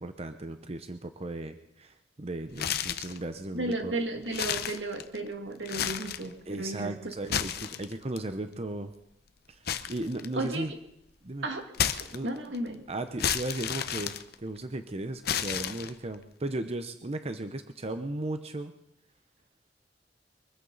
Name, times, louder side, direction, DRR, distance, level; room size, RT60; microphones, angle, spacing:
voice 1, 0.0-3.9 6.5-8.9 9.5-10.7 11.2-11.5 12.1-12.3 12.9-18.7, right 2 dB, 35° right, 8 dB, 0.8 m, -36 dB
Zombie Flesh Bites, 2.5-3.2 3.7-3.8 4.3-5.3 5.6-6.3 7.1-8.2 9.7-10.7 11.7-12.6 13.2-14.8 15.2-16.2, left 8 dB, 60° left, 0.8 m, -32 dB
voice 2, 3.5-6.9 10.3-10.8 11.4-11.7 12.0-12.8, right 2 dB, 85° right, 4 dB, 2.3 m, -34 dB
24.0 x 14.5 x 4.1 m, 0.76 s
head